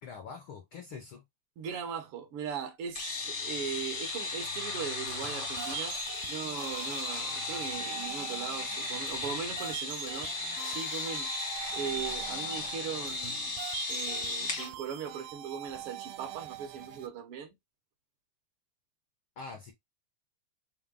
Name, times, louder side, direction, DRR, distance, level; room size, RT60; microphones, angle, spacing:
voice 1, 0.0-1.2 19.4-19.7, left 5 dB, 90° left, 1.1 m, -44 dB
voice 2, 1.6-6.0 6.3-10.3 10.6-13.6 13.9-17.5, right 7 dB, 75° right, 1.3 m, -39 dB
sound 1, 2.9-14.7, left 3 dB, 60° left, 0.7 m, -36 dB
sound 2, 5.1-17.1, right 13 dB, 90° right, 2.2 m, -44 dB
5.7 x 2.2 x 3.7 m
omnidirectional pair, 3.7 m